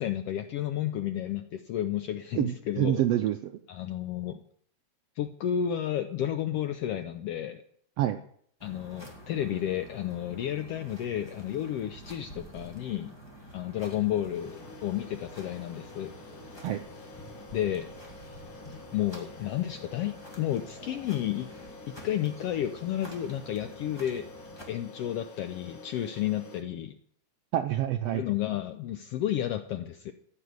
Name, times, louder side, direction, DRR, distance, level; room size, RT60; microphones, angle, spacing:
voice 1, 0.0-3.0 3.7-4.4 5.2-7.6 8.6-13.1 13.5-16.1 17.5-17.9 18.9-21.5 21.9-24.3 24.7-27.0 28.1-30.1, left 11 dB, 80° left, 8 dB, 1.4 m, -32 dB
voice 2, 2.3-3.5 8.0-8.2 16.6-16.8 27.5-28.2, right 12 dB, 80° right, 8 dB, 1.4 m, -27 dB
sound 1, 8.6-24.6, right 1 dB, 10° left, 2.0 m, -49 dB
sound 2, 14.3-26.6, left 3 dB, 50° left, 2.3 m, -48 dB
14.5 x 5.6 x 9.4 m, 0.63 s
omnidirectional pair, 3.4 m